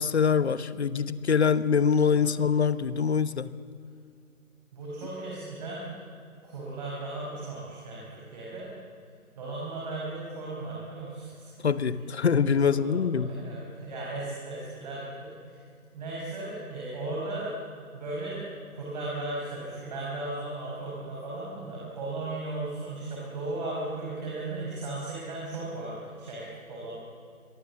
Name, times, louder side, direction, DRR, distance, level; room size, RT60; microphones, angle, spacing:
voice 1, 0.0-3.5 11.6-13.3, left 6 dB, 50° left, 15 dB, 1.1 m, -24 dB
voice 2, 4.7-5.8 6.4-8.7 9.3-11.7 12.5-15.6 15.9-17.5 17.9-26.9, right 2 dB, 30° right, -4 dB, 5.6 m, -36 dB
28.5 x 22.5 x 7.3 m, 2.4 s
figure-of-eight pair, 155°, 43 cm